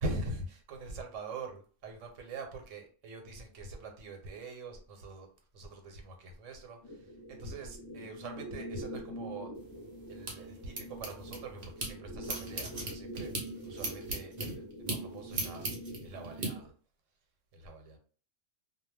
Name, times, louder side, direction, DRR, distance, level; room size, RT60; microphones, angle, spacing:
voice 1, 0.0-5.3 5.5-9.5 10.1-13.3 13.7-15.7 16.0-16.7 17.5-18.0, right 2 dB, 80° right, 4 dB, 1.0 m, -43 dB
sound 1, 6.8-16.7, equal, 25° left, 0.7 m, -45 dB
sound 2, 9.6-11.9 12.2-16.5, right 2 dB, 45° right, 0.6 m, -39 dB
2.2 x 2.0 x 3.2 m, 0.41 s
omnidirectional pair, 1.3 m